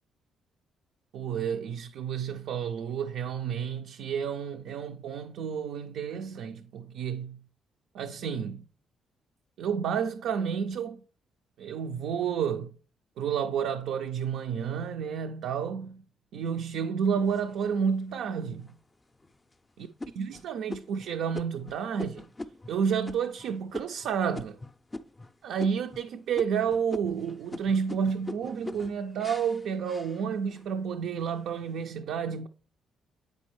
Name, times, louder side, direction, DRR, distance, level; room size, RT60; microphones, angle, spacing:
voice 1, 1.1-7.4 7.9-8.6 9.6-11.0 11.6-12.7 13.2-16.0 16.3-18.7 19.8-19.9 20.2-22.3 22.7-24.6 25.4-32.5, right 7 dB, 80° right, 0.3 m, -30 dB
sound 1, 17.2-18.0 18.6-18.7 19.2-19.5 20.0-25.3 25.6-26.1 26.3-30.7 31.1-31.7, left 2 dB, 20° left, 0.4 m, -42 dB
8.1 x 5.2 x 3.0 m
cardioid pair, 90°, 0 cm